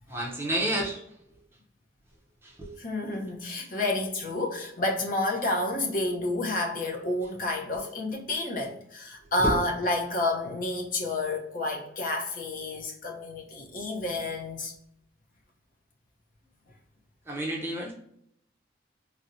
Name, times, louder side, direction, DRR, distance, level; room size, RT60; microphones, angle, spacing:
voice 1, 0.1-1.0 2.4-2.7 3.1-3.2 9.4-9.5 17.3-17.9, right 1 dB, 15° right, 0.5 m, -30 dB
voice 2, 2.8-14.7, left 2 dB, 45° left, 0.7 m, -30 dB
4.1 x 2.1 x 2.5 m
head